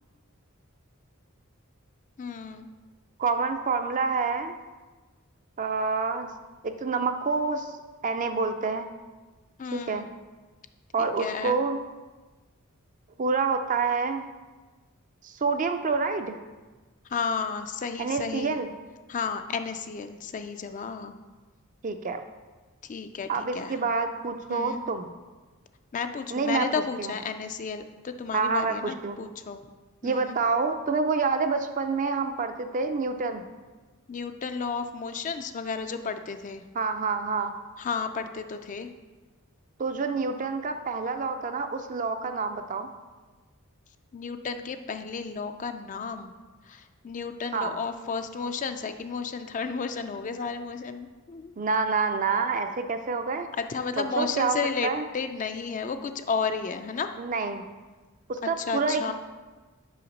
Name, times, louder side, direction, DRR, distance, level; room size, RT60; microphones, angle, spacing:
voice 1, 2.2-2.7 9.6-10.1 11.0-11.6 17.1-18.6 19.1-21.2 22.8-23.8 24.5-24.8 25.9-29.6 30.0-30.4 34.1-36.6 37.8-38.9 44.1-46.3 46.7-51.5 53.6-57.1 58.6-59.1, left 5 dB, 35° left, 8 dB, 0.3 m, -32 dB
voice 2, 3.2-4.5 5.6-6.3 6.6-7.7 8.0-8.9 9.7-10.1 10.9-11.8 13.2-14.3 15.2-16.4 18.0-18.7 21.8-22.2 23.3-25.1 26.3-26.7 27.0-27.1 28.3-29.2 30.0-33.4 36.7-37.5 39.8-42.9 47.5-47.7 51.6-53.5 54.0-54.6 54.8-55.0 57.2-57.6 58.3-59.1, right 4 dB, 35° right, 8 dB, 0.4 m, -27 dB
5.7 x 5.7 x 5.2 m, 1.3 s
head